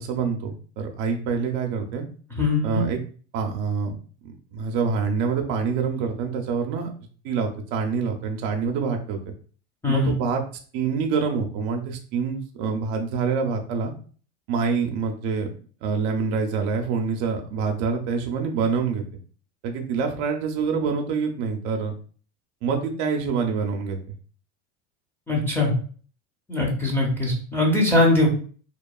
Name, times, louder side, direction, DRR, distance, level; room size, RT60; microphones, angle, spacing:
voice 1, 0.0-2.0 2.6-3.0 3.3-4.0 4.2-6.9 7.2-9.3 9.9-10.4 10.7-13.9 14.5-15.5 15.8-19.0 19.6-21.9 22.6-24.0, right 5 dB, 60° right, 3 dB, 0.5 m, -26 dB
voice 2, 2.4-2.8 9.8-10.1 25.3-25.7 26.5-28.3, left 2 dB, 5° left, -2 dB, 0.6 m, -21 dB
2.9 x 2.2 x 2.2 m, 0.42 s
supercardioid pair, 130°, 34 cm